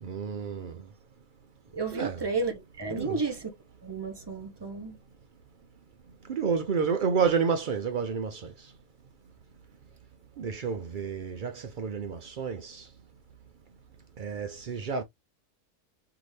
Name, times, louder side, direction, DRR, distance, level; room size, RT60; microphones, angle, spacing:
voice 1, 0.0-0.8 1.9-2.2 2.9-3.2 6.3-8.5 10.4-12.9 14.2-15.0, right 6 dB, 75° right, 0.4 m, -30 dB
voice 2, 1.7-3.5 3.8-5.0, right 4 dB, 20° right, 0.8 m, -32 dB
5.7 x 2.7 x 3.2 m
omnidirectional pair, 1.6 m